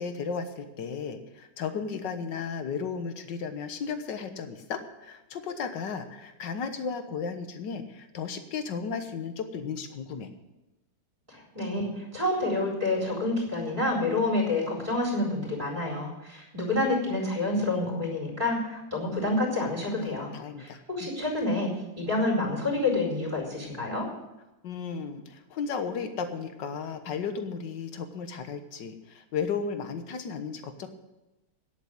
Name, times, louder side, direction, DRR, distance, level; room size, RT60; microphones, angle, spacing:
voice 1, 0.0-10.3 20.0-21.1 24.6-30.9, left 6 dB, 65° left, 8 dB, 1.8 m, -34 dB
voice 2, 11.3-21.7 22.0-24.1, left 2 dB, 20° right, -3 dB, 4.6 m, -28 dB
10.5 x 8.3 x 9.6 m, 1.0 s
omnidirectional pair, 2.2 m